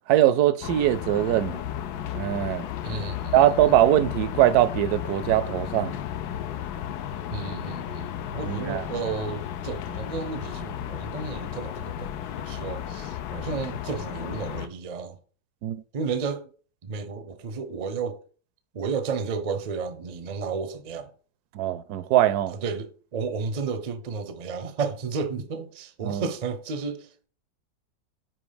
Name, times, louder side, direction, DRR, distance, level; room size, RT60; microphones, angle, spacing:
voice 1, 0.1-1.6 2.1-2.7 3.3-6.0 8.5-8.8 15.6-15.8 21.5-22.5 26.0-26.2, right 12 dB, 80° right, 1.1 m, -21 dB
sound 1, 0.6-14.7, left 10 dB, 85° left, 1.2 m, -34 dB
voice 2, 2.8-3.6 7.3-15.2 15.9-16.5 16.8-18.2 18.7-21.1 22.5-27.3, right 5 dB, 50° right, 0.5 m, -32 dB
6.0 x 4.6 x 5.0 m
omnidirectional pair, 1.7 m